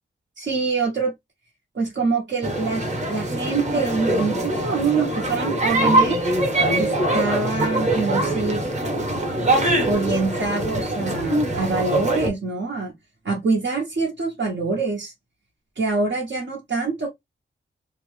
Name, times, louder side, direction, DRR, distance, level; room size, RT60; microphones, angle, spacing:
voice 1, 0.4-1.1 1.7-6.2 6.5-8.6 9.6-12.9 13.2-15.1 15.8-17.1, right 4 dB, 65° right, 1.0 m, -25 dB
sound 1, 2.4-12.3, right 1 dB, 35° right, 1.0 m, -23 dB
2.8 x 2.1 x 3.2 m
wide cardioid pair, 105°, 21 cm